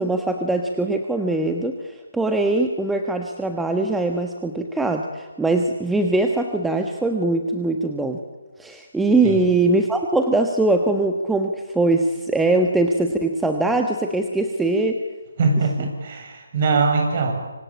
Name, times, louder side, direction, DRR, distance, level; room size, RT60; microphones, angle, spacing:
voice 1, 0.0-8.2 8.6-15.0, right 2 dB, 5° right, 4 dB, 1.4 m, -22 dB
voice 2, 15.4-17.3, right 4 dB, 40° right, 4 dB, 7.5 m, -21 dB
25.5 x 25.0 x 8.8 m, 1.2 s
figure-of-eight pair, 150°, 0 cm